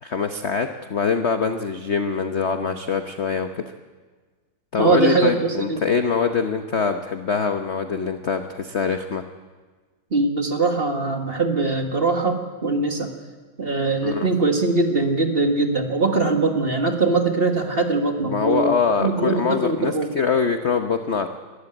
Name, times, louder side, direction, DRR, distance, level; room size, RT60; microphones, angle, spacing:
voice 1, 0.0-3.6 4.7-9.2 14.0-14.3 18.2-21.3, left 5 dB, 50° left, 7 dB, 0.8 m, -23 dB
voice 2, 4.8-5.8 10.1-13.1 13.6-20.1, right 3 dB, 30° right, 4 dB, 1.7 m, -22 dB
22.5 x 14.0 x 9.1 m, 1.4 s
omnidirectional pair, 2.3 m